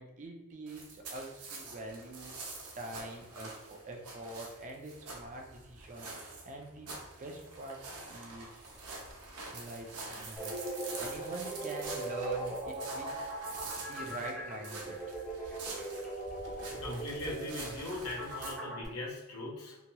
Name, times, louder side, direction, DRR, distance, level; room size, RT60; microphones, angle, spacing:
voice 1, 0.0-6.1 6.4-6.9 7.2-7.8 8.1-8.6 9.5-10.5 11.0-13.1 13.8-15.0, right 2 dB, 35° right, 2 dB, 0.4 m, -44 dB
sound 1, 0.7-18.5, right 3 dB, 85° right, 0.7 m, -46 dB
sound 2, 10.4-18.8, right 1 dB, ahead, 0.9 m, -40 dB
voice 2, 16.6-19.8, left 2 dB, 75° left, -5 dB, 0.9 m, -40 dB
2.8 x 2.8 x 2.2 m, 0.98 s
head